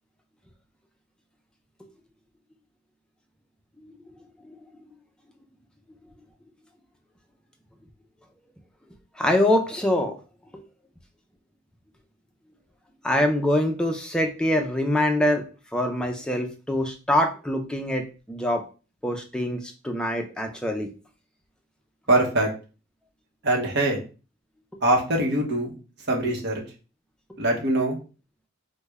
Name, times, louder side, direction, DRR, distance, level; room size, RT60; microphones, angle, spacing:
voice 1, 9.2-10.2 10.5-10.6 13.0-15.5 15.7-18.7 19.0-20.9, left 1 dB, 5° left, 3 dB, 0.4 m, -24 dB
voice 2, 22.1-22.5 23.4-24.0 24.8-25.7 26.1-26.6 27.4-28.0, right 1 dB, 55° right, 0 dB, 0.9 m, -22 dB
3.2 x 2.1 x 3.4 m, 0.34 s
head